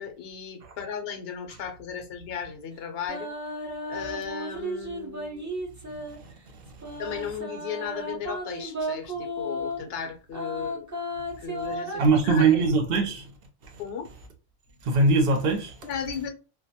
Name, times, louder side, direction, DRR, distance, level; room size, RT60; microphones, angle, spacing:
voice 1, 0.0-3.3 3.9-5.5 7.0-10.9 11.4-12.7 13.8-14.1 15.8-16.3, left 7 dB, 65° left, 0.8 m, -36 dB
sound 1, 3.1-6.2 6.8-9.8 10.3-12.0, equal, 20° right, 0.5 m, -34 dB
voice 2, 12.0-13.3 14.8-15.8, right 3 dB, 65° right, 0.8 m, -21 dB
2.2 x 2.1 x 2.7 m
omnidirectional pair, 1.2 m